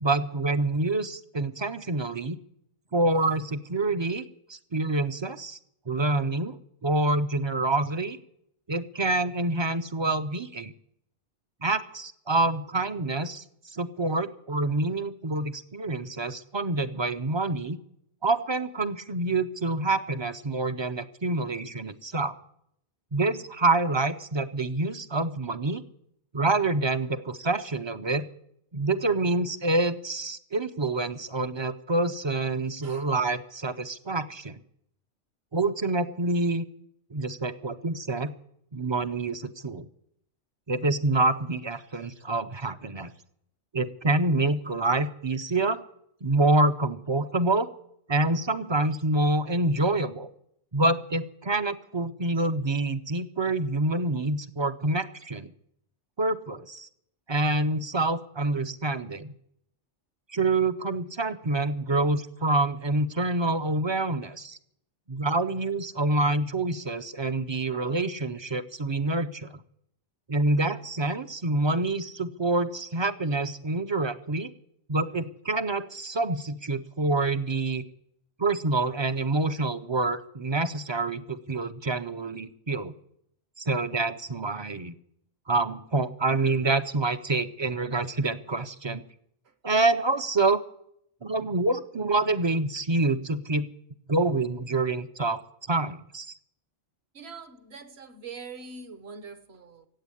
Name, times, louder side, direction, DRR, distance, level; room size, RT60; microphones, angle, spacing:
voice 1, 0.0-2.4 2.9-5.6 5.9-6.6 6.8-8.2 8.7-10.7 11.6-17.8 18.2-22.4 23.1-25.8 26.3-28.3 28.7-34.6 35.5-36.6 37.1-38.3 38.7-39.9 40.7-43.1 43.7-45.8 46.2-47.7 48.1-50.3 50.7-55.5 56.2-56.9 57.3-59.3 60.3-64.6 65.1-69.6 70.3-74.5 74.9-77.8 78.4-82.9 83.6-84.9 85.5-89.0 89.6-90.6 91.2-93.7 94.1-95.4 95.7-96.3, right 2 dB, 35° right, 12 dB, 0.4 m, -27 dB
voice 2, 97.1-99.9, right 4 dB, 60° right, 11 dB, 1.5 m, -43 dB
15.5 x 8.4 x 9.7 m, 0.75 s
omnidirectional pair, 1.2 m